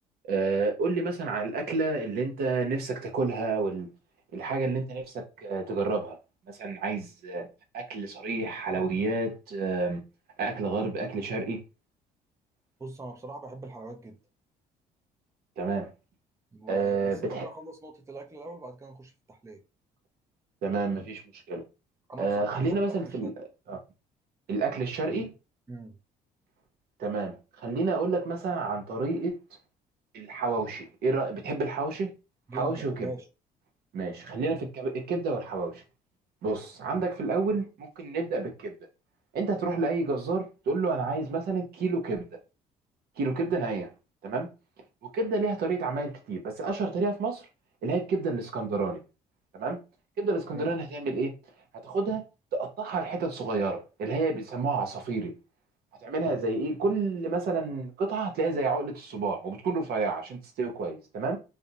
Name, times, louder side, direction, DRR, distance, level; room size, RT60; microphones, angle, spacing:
voice 1, 0.3-3.9 4.3-6.2 6.5-7.5 7.7-10.0 10.4-11.6 15.6-15.9 16.7-17.5 20.6-21.6 22.2-23.3 23.7-23.8 24.5-25.3 27.0-29.3 30.1-32.1 32.5-33.1 33.9-35.8 36.4-38.7 39.3-42.3 43.2-43.9 44.2-44.5 45.1-47.5 47.8-49.0 49.5-49.8 50.2-51.3 51.8-52.2 52.5-55.3 56.0-61.4, right 3 dB, 65° right, 0.8 m, -29 dB
voice 2, 12.8-14.2 16.5-19.6 22.1-23.3 25.7-26.0 32.5-33.3 50.5-50.7, right 2 dB, 15° right, 0.5 m, -42 dB
2.5 x 2.0 x 2.7 m
supercardioid pair, 70°, 17 cm